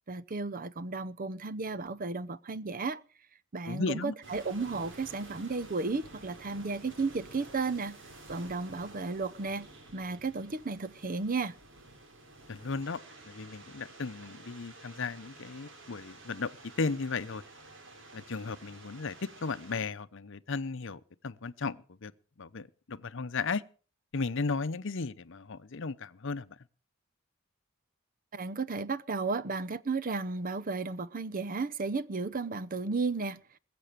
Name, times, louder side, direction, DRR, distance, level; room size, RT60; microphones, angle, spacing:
voice 1, 0.1-3.0 3.5-8.0 8.3-11.6 28.3-33.4, right 4 dB, 45° right, 0.7 m, -34 dB
voice 2, 3.7-4.1 12.5-13.0 13.2-16.5 16.8-17.4 18.1-22.1 22.4-23.6 24.1-26.5, left 4 dB, 65° left, 0.8 m, -35 dB
sound 1, 4.2-19.9, right 2 dB, 65° right, 3.2 m, -51 dB
21.0 x 7.8 x 6.7 m
head